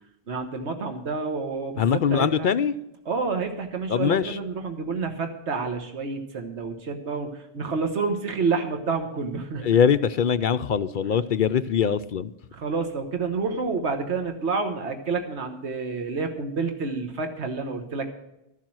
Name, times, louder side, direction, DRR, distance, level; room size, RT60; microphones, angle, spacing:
voice 1, 0.3-2.5 3.0-9.6 12.5-18.1, right 4 dB, 90° right, 5 dB, 1.5 m, -29 dB
voice 2, 1.8-2.8 3.9-4.4 9.6-12.3, left 7 dB, 60° left, 12 dB, 0.6 m, -22 dB
13.0 x 7.4 x 7.6 m, 0.87 s
omnidirectional pair, 1.1 m